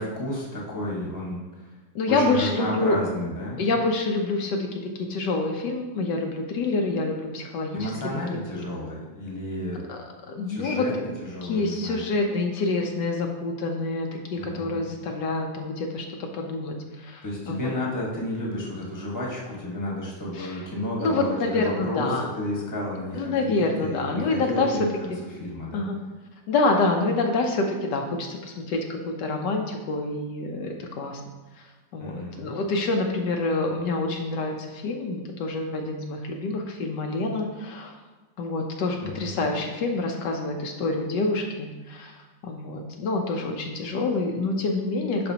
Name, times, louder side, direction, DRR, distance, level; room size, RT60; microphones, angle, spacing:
voice 1, 0.0-1.7 2.1-3.6 7.7-9.9 10.5-10.9 11.2-12.0 14.4-14.8 17.2-25.1 25.4-25.9 32.0-32.5 39.0-39.3, left 1 dB, 10° left, -3 dB, 1.3 m, -31 dB
voice 2, 1.9-3.0 3.6-7.9 8.6-8.7 9.9-10.0 10.3-10.9 11.4-17.6 20.4-20.5 21.0-22.3 23.1-25.2 25.7-26.0 26.5-31.2 31.9-37.9 38.4-42.2 42.4-45.3, left 3 dB, 75° left, 2 dB, 1.3 m, -27 dB
11.0 x 4.3 x 2.9 m, 1.3 s
omnidirectional pair, 1.9 m